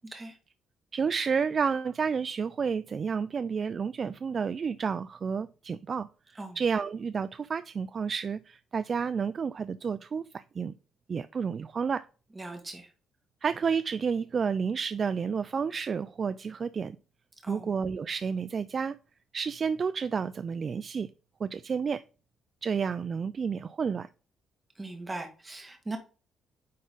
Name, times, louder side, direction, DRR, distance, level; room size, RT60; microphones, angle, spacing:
voice 1, 0.9-10.7 11.1-12.1 13.4-17.0 17.5-19.0 19.3-21.1 21.4-22.0 22.6-24.1, right 6 dB, 45° right, 0.3 m, -30 dB
voice 2, 12.4-12.9 17.4-17.7 24.8-26.0, right 2 dB, 20° right, 1.9 m, -39 dB
9.4 x 3.9 x 3.8 m
cardioid pair, 90°, 0 cm